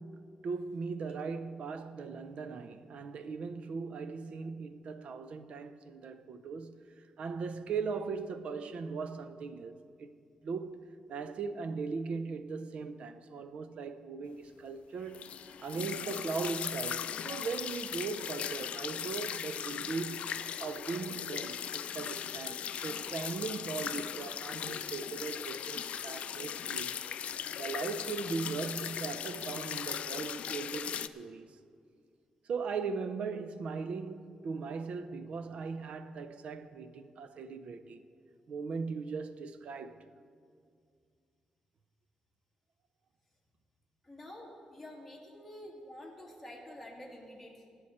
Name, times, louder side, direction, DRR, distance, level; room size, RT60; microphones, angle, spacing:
voice 1, 0.0-10.1 10.4-15.3 15.6-27.0 27.6-31.6 32.4-38.0 38.5-40.0, right 5 dB, 60° right, 0.6 m, -39 dB
sound 1, 15.1-31.1, left 9 dB, 65° left, 0.4 m, -38 dB
voice 2, 44.0-47.7, left 1 dB, ahead, 2.6 m, -48 dB
21.0 x 8.9 x 4.3 m
wide cardioid pair, 145°, 2 cm